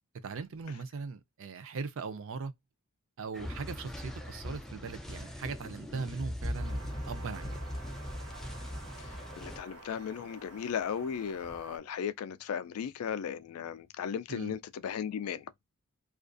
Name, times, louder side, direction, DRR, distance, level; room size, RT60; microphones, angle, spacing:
voice 1, 0.2-2.5 3.2-7.6 14.3-14.5, right 5 dB, 65° right, 0.5 m, -39 dB
sound 1, 3.3-9.6, equal, ahead, 0.4 m, -40 dB
sound 2, 6.5-11.8, right 2 dB, 85° right, 0.8 m, -50 dB
voice 2, 9.0-15.5, left 7 dB, 80° left, 0.3 m, -36 dB
2.4 x 2.2 x 2.4 m
head